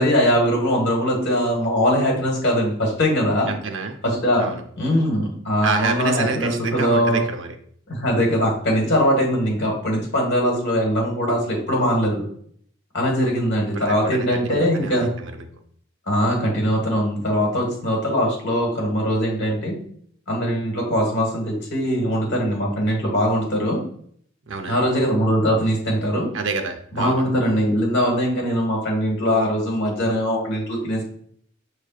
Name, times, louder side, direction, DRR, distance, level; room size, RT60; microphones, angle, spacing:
voice 1, 0.0-3.5 4.0-4.4 4.8-7.2 7.9-12.2 12.9-15.1 16.1-19.7 20.3-23.8 24.7-26.3 26.9-31.0, equal, 65° left, 0 dB, 1.4 m, -21 dB
voice 2, 3.5-4.0 4.4-4.6 5.6-7.6 13.7-15.5 24.5-24.8 26.3-27.2, right 4 dB, 70° right, 6 dB, 0.6 m, -28 dB
6.3 x 3.2 x 2.3 m, 0.62 s
head